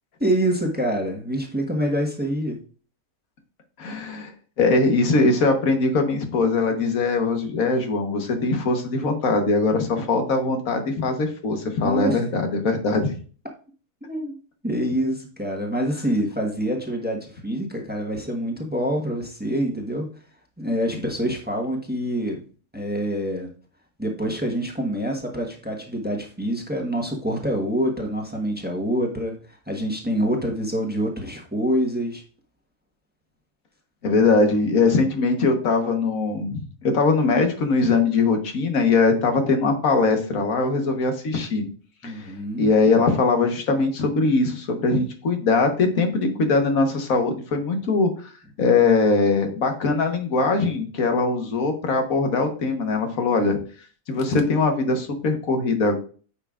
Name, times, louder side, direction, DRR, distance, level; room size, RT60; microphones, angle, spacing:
voice 1, 0.2-2.6 11.8-12.2 14.0-14.4 14.6-20.1 20.6-22.4 22.7-23.5 24.0-29.4 29.7-32.2 42.0-42.7, equal, 10° right, 1 dB, 1.1 m, -26 dB
voice 2, 3.8-4.3 4.6-13.1 34.0-41.6 42.0-42.3 42.6-48.1 48.6-53.6 54.1-55.9, left 3 dB, 90° left, 5 dB, 1.6 m, -21 dB
8.9 x 5.7 x 2.4 m, 0.40 s
omnidirectional pair, 1.4 m